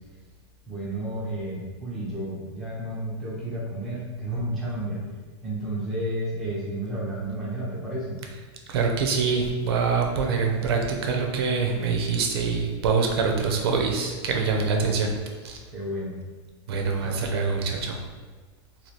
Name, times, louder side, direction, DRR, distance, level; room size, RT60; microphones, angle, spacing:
voice 1, 0.7-5.0 5.4-8.2 14.7-14.9 15.7-16.2 17.0-17.2, right 1 dB, ahead, -8 dB, 0.3 m, -31 dB
voice 2, 8.7-15.1 15.4-15.6 16.7-18.0, right 5 dB, 60° right, 2 dB, 0.5 m, -25 dB
2.8 x 2.2 x 3.1 m, 1.4 s
supercardioid pair, 180°, 15 cm